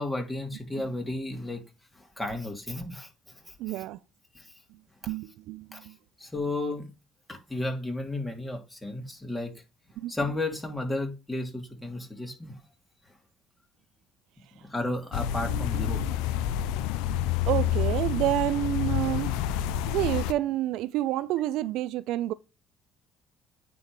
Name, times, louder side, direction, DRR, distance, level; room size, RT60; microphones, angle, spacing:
voice 1, 0.0-1.6 2.2-3.1 3.4-3.5 4.3-4.5 5.7-5.9 6.2-6.9 7.3-9.5 10.1-12.5 14.6-16.0, left 2 dB, 10° left, 2.8 m, -33 dB
voice 2, 3.6-4.0 5.1-6.0 10.0-10.1 15.5-16.1 17.5-19.3 19.9-22.3, right 14 dB, 75° right, 0.3 m, -29 dB
sound 1, 15.1-20.3, left 10 dB, 80° left, 0.4 m, -28 dB
9.3 x 3.6 x 4.7 m
hypercardioid pair, 60°, 0 cm